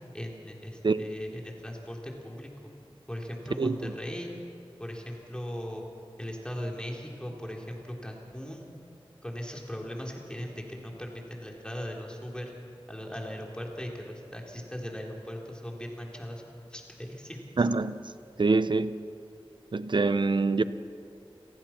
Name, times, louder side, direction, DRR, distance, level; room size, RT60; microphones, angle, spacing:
voice 1, 0.1-2.7 3.1-4.3 4.8-5.8 6.2-8.7 9.2-12.5 12.9-16.4 16.7-17.6, equal, 10° left, 3.5 m, -39 dB
voice 2, 17.6-18.0 18.4-18.9 19.7-20.6, right 3 dB, 55° right, 0.7 m, -24 dB
29.0 x 15.0 x 6.0 m
wide cardioid pair, 65°, 10 cm